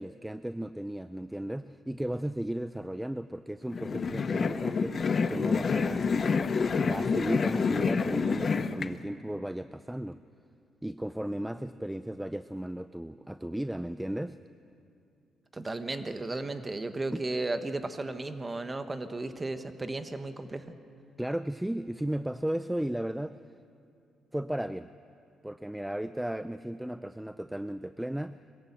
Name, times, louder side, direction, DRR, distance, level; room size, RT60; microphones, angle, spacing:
voice 1, 0.0-10.2 10.8-14.4 21.2-23.4 24.3-24.9 25.4-28.4, right 1 dB, 5° right, 12 dB, 0.4 m, -35 dB
sound 1, 3.7-8.9, left 5 dB, 45° left, 0.8 m, -28 dB
voice 2, 15.5-20.7, right 2 dB, 20° right, 9 dB, 1.2 m, -34 dB
22.0 x 15.0 x 8.2 m, 2.6 s
cardioid pair, 90°, 0 cm